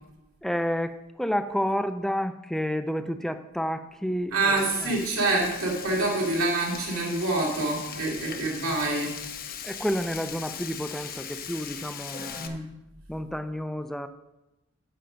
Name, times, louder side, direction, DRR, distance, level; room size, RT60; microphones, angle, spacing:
voice 1, 0.4-5.0 9.6-12.6 13.1-14.1, equal, ahead, 10 dB, 0.4 m, -30 dB
voice 2, 4.3-9.1 12.3-12.6, right 2 dB, 85° right, -3 dB, 2.8 m, -26 dB
Frying (food), 4.6-12.5, left 8 dB, 45° left, 0.7 m, -39 dB
10.0 x 5.3 x 6.3 m, 0.95 s
head